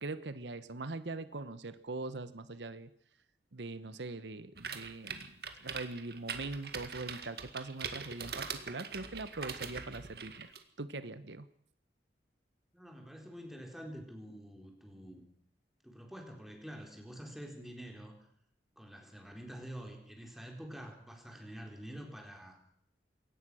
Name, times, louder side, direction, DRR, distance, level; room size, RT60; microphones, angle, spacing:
voice 1, 0.0-2.9 3.5-5.3 5.6-11.5, right 3 dB, 85° right, 13 dB, 1.1 m, -42 dB
sound 1, 4.6-10.6, right 6 dB, 60° right, 2.1 m, -42 dB
voice 2, 12.7-15.2 15.8-18.3 18.8-22.6, equal, ahead, 1 dB, 4.1 m, -47 dB
22.5 x 18.5 x 6.3 m, 0.67 s
head